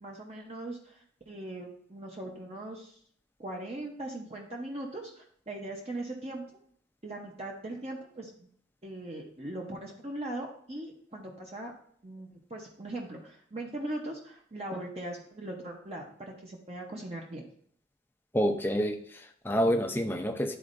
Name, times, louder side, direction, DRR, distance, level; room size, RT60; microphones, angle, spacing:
voice 1, 0.0-3.0 3.4-6.6 7.0-8.5 8.8-11.7 12.0-17.5, right 1 dB, 35° right, -1 dB, 0.8 m, -40 dB
voice 2, 18.3-20.6, equal, 10° left, 5 dB, 0.5 m, -28 dB
11.5 x 4.2 x 2.5 m, 0.62 s
head